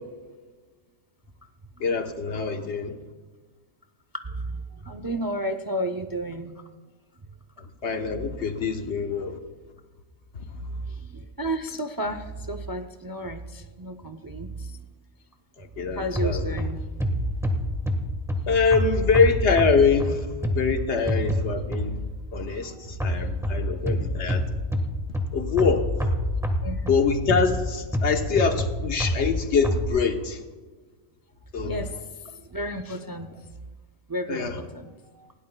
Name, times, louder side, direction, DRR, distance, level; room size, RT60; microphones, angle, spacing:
voice 1, 1.8-3.0 7.8-9.4 10.3-10.6 15.6-16.4 18.5-22.0 22.3-24.4 25.3-25.9 26.9-30.4 31.5-31.9 34.3-34.6, left 5 dB, 70° left, 5 dB, 1.3 m, -24 dB
voice 2, 4.2-6.6 10.8-14.8 15.9-16.8 22.7-22.9 23.5-23.6 23.9-24.0 26.6-27.0 31.6-32.0 32.2-33.4 34.1-35.3, right 1 dB, 30° right, 8 dB, 0.4 m, -32 dB
sound 1, 16.1-22.2 23.0-29.9, left 1 dB, ahead, 1.3 m, -27 dB
20.0 x 17.0 x 2.2 m, 1.3 s
omnidirectional pair, 1.2 m